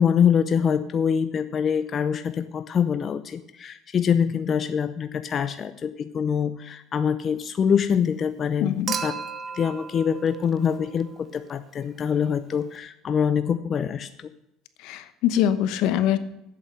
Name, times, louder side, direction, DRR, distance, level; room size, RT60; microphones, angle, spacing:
voice 1, 0.0-9.1 9.5-14.1, left 7 dB, 35° left, 10 dB, 0.5 m, -24 dB
voice 2, 8.6-9.0 14.8-16.2, left 10 dB, 70° left, 12 dB, 1.0 m, -23 dB
Human group actions / Chink clink / Liquid, 8.9-11.3 12.7-12.8, right 6 dB, 35° right, 0.9 m, -34 dB
8.1 x 7.8 x 7.9 m, 0.87 s
cardioid pair, 125°, 0 cm